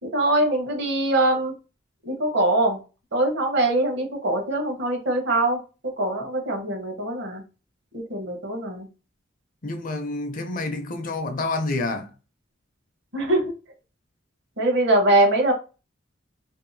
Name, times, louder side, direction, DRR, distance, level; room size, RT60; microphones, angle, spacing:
voice 1, 0.0-1.5 2.0-2.8 3.1-5.6 6.0-7.4 7.9-8.9 13.1-13.5 14.6-15.5, right 1 dB, 70° right, 1.0 m, -22 dB
voice 2, 9.6-12.1, left 2 dB, 45° left, 0.5 m, -28 dB
2.7 x 2.2 x 2.6 m
head